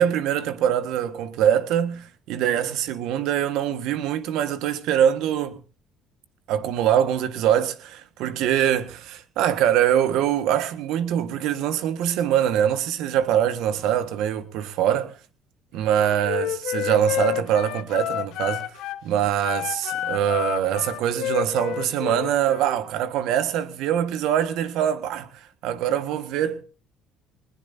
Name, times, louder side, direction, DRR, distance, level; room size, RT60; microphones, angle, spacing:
voice 1, 0.0-5.6 6.5-15.1 15.7-18.7 19.0-26.6, right 10 dB, 75° right, 1.5 m, -23 dB
Wind instrument woodwind instrument, 15.9-19.0 19.4-22.8, left 12 dB, 75° left, 1.3 m, -30 dB
21.0 x 20.0 x 2.7 m
supercardioid pair, 80°, 0 cm